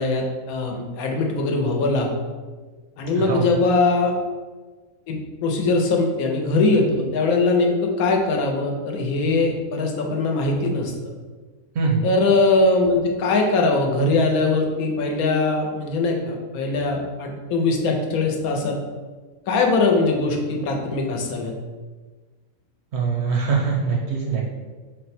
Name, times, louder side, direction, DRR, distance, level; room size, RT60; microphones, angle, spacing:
voice 1, 0.0-2.1 3.0-4.1 5.1-10.9 12.0-18.8 19.5-21.5, left 3 dB, 85° left, 2 dB, 1.1 m, -21 dB
voice 2, 3.2-3.5 11.8-12.0 22.9-24.4, right 5 dB, 65° right, -2 dB, 0.7 m, -23 dB
4.0 x 2.1 x 4.1 m, 1.4 s
omnidirectional pair, 1.5 m